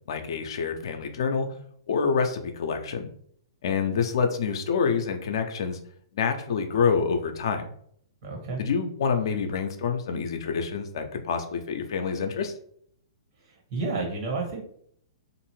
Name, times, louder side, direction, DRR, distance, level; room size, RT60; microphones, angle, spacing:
voice 1, 0.1-1.5 1.9-3.1 3.6-5.8 6.1-7.7 8.6-12.5, left 5 dB, 65° left, 5 dB, 0.5 m, -27 dB
voice 2, 8.2-8.6 13.4-14.6, right 3 dB, 55° right, -1 dB, 1.4 m, -31 dB
2.6 x 2.5 x 3.1 m, 0.65 s
hypercardioid pair, 120°, 3 cm